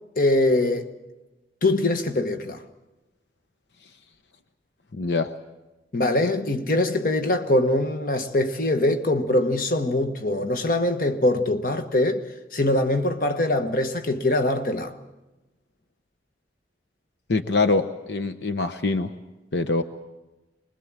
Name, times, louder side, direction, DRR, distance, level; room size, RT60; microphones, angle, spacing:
voice 1, 0.2-0.9 1.6-2.6 5.9-12.2 12.5-14.9, left 1 dB, 50° left, 1.3 m, -23 dB
voice 2, 4.9-5.3 17.3-19.1 19.5-19.8, left 3 dB, 75° left, 0.9 m, -24 dB
24.5 x 21.0 x 7.5 m
head